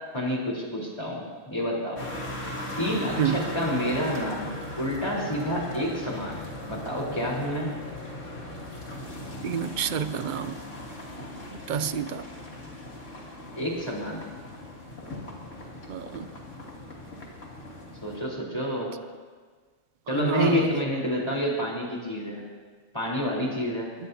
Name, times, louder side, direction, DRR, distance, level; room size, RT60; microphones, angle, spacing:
voice 1, 0.1-2.0 2.8-6.4 6.7-7.8 13.5-14.3 18.0-18.9 20.1-22.5 22.9-24.0, equal, 20° left, -3 dB, 4.1 m, -29 dB
sound 1, 2.0-18.2, left 1 dB, 90° left, 3.2 m, -38 dB
voice 2, 9.4-10.6 11.7-12.2 15.9-16.3 20.2-20.7, right 8 dB, 50° right, 13 dB, 0.6 m, -28 dB
23.0 x 20.0 x 2.8 m, 1.5 s
omnidirectional pair, 1.2 m